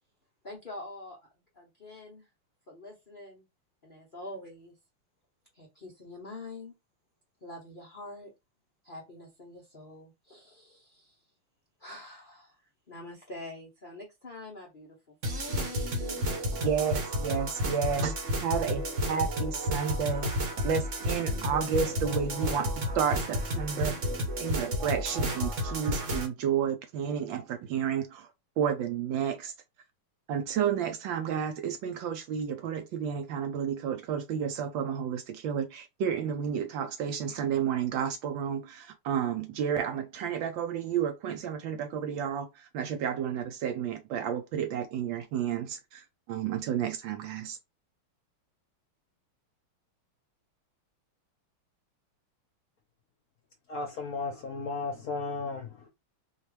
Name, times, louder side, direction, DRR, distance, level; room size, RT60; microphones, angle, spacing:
voice 1, 0.4-1.3 1.5-2.3 2.7-3.4 3.8-4.8 5.5-6.8 7.4-8.3 8.8-11.3 11.8-12.6 12.9-16.4, left 2 dB, 80° left, 0.4 m, -45 dB
sound 1, 15.2-26.3, equal, 50° right, 1.0 m, -31 dB
voice 2, 16.6-18.2 18.4-20.3 20.6-24.0 24.4-28.3 28.6-29.5 30.3-42.5 42.7-46.0 46.3-47.6, right 8 dB, 75° right, 1.1 m, -31 dB
voice 3, 53.7-55.9, left 3 dB, 60° left, 1.0 m, -35 dB
4.3 x 2.4 x 3.2 m
omnidirectional pair, 2.4 m